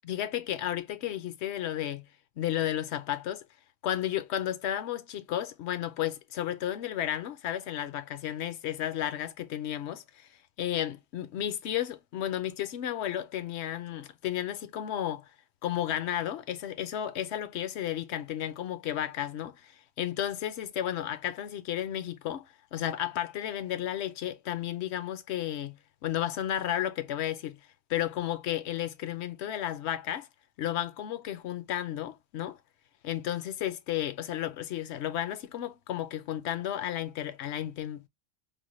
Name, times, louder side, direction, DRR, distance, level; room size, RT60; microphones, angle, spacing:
voice 1, 0.0-2.1 2.4-3.4 3.8-10.3 10.6-15.3 15.6-19.7 20.0-27.6 27.9-30.3 30.6-32.6 33.0-38.1, left 11 dB, 65° left, 0.8 m, -33 dB
5.1 x 2.2 x 3.0 m
omnidirectional pair, 1.3 m